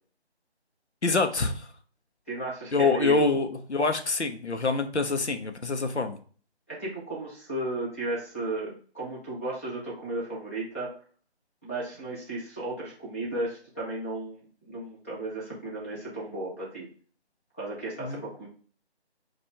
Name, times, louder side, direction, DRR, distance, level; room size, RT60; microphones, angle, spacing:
voice 1, 1.0-1.7 2.7-6.2 18.0-18.2, left 3 dB, 85° left, 7 dB, 0.9 m, -26 dB
voice 2, 2.3-3.4 6.7-10.9 11.6-14.4 14.7-16.9 17.6-18.5, right 2 dB, 10° left, -5 dB, 1.0 m, -34 dB
4.3 x 2.6 x 4.7 m, 0.42 s
figure-of-eight pair, 160°, 33 cm